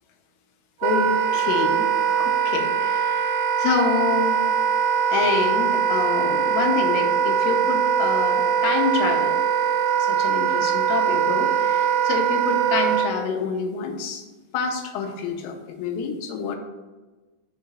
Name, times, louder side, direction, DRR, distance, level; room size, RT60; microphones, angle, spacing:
voice 1, 0.8-4.4 5.1-9.3 10.0-14.2 14.5-16.6, left 5 dB, 85° left, 4 dB, 2.5 m, -27 dB
Wind instrument woodwind instrument, 0.8-13.1, right 8 dB, 85° right, 2.3 m, -22 dB
5.8 x 3.7 x 5.4 m, 1.2 s
omnidirectional pair, 4.0 m